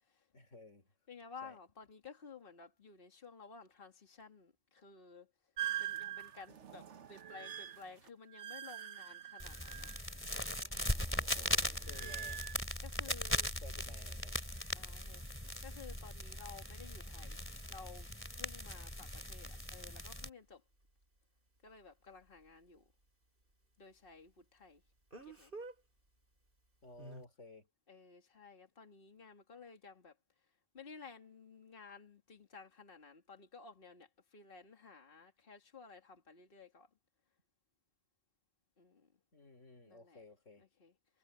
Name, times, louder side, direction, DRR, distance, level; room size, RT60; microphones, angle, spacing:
voice 1, 0.3-0.9 1.4-1.6 11.8-12.4 13.1-13.2 13.6-14.4 26.8-27.7 39.3-40.6, left 2 dB, 80° left, 3.5 m, -55 dB
voice 2, 1.1-5.3 5.8-9.9 11.3-11.7 12.0-12.1 12.8-13.5 14.7-15.2 15.6-17.4 17.7-20.6 21.6-22.9 23.8-24.8 25.2-25.5 27.9-30.2 30.7-36.9 38.8-39.1 39.9-40.2 40.6-41.2, left 5 dB, 45° left, 2.2 m, -55 dB
sound 1, 5.6-10.3 10.6-12.6, right 11 dB, 70° right, 1.3 m, -44 dB
sound 2, 9.4-20.3, left 1 dB, 10° left, 2.9 m, -39 dB
Speech, 19.8-19.9 25.1-25.7 27.0-27.2, right 2 dB, 45° right, 6.8 m, -48 dB
omnidirectional pair, 1.3 m